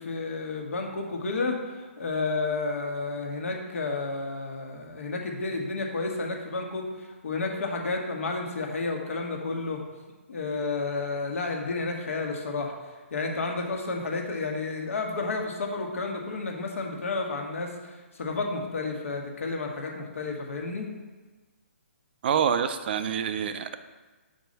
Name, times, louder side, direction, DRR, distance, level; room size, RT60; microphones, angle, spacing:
voice 1, 0.0-9.8 10.3-12.7 13.1-20.9, left 3 dB, 70° left, 2 dB, 1.3 m, -31 dB
voice 2, 22.2-23.8, right 8 dB, 45° right, 11 dB, 0.4 m, -26 dB
5.3 x 4.6 x 5.3 m, 1.3 s
hypercardioid pair, 145°, 7 cm